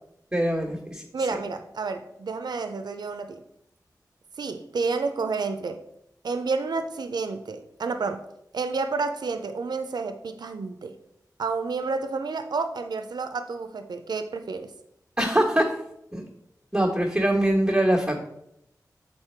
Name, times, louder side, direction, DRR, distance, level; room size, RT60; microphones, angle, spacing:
voice 1, 0.3-1.0 15.2-15.7 16.1-16.2 16.7-18.2, right 1 dB, 10° right, -3 dB, 1.3 m, -23 dB
voice 2, 1.1-3.4 4.4-5.8 6.2-8.2 8.5-11.0 11.4-14.7, right 4 dB, 85° right, 8 dB, 0.5 m, -30 dB
7.3 x 4.2 x 4.5 m, 0.78 s
wide cardioid pair, 60°, 7 cm